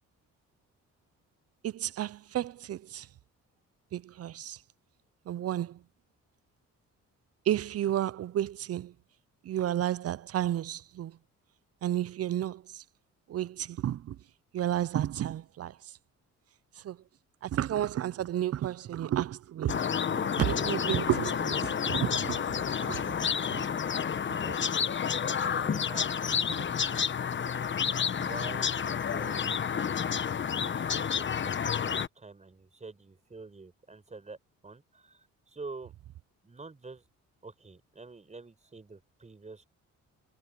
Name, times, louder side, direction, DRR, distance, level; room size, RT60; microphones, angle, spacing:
voice 1, 1.6-3.1 3.9-4.6 5.3-5.8 7.5-8.9 9.4-11.2 11.8-12.8 13.3-14.2 14.5-15.8 16.8-17.0 17.4-19.8 20.1-22.4 22.8-23.0 23.5-23.6, right 12 dB, 55° right, 0.6 m, -31 dB
sound 1, 19.7-32.1, left 7 dB, 40° left, 1.0 m, -30 dB
voice 2, 24.4-25.0 25.5-26.8 28.1-29.5 30.5-34.4 34.6-35.9 36.4-37.0 37.4-39.7, right 3 dB, 25° right, 5.4 m, -47 dB
cardioid pair, 90°, 30 cm